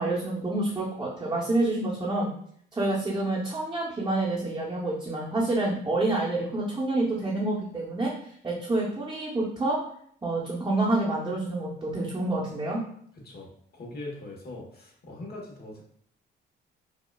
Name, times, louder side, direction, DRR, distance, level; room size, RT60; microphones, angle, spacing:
voice 1, 0.0-2.3 2.7-8.1 8.4-9.8 10.2-12.8, right 2 dB, 20° right, -6 dB, 0.9 m, -28 dB
voice 2, 13.2-15.8, left 2 dB, 50° left, -1 dB, 1.3 m, -41 dB
5.2 x 2.4 x 2.3 m, 0.63 s
cardioid pair, 90°, 20 cm